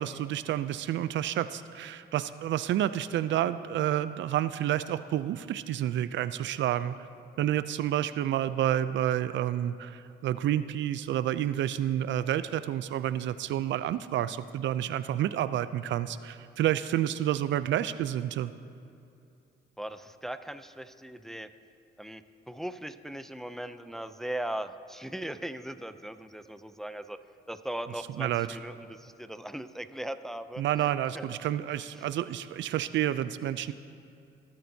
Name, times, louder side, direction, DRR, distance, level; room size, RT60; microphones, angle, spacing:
voice 1, 0.0-7.0 7.4-18.5 28.2-28.5 30.6-33.7, right 12 dB, 70° right, 14 dB, 0.4 m, -29 dB
voice 2, 19.8-21.5 22.0-27.2 27.5-31.3 32.0-32.1, right 1 dB, ahead, 11 dB, 0.4 m, -39 dB
20.0 x 8.9 x 2.7 m, 2.6 s
cardioid pair, 90°, 20 cm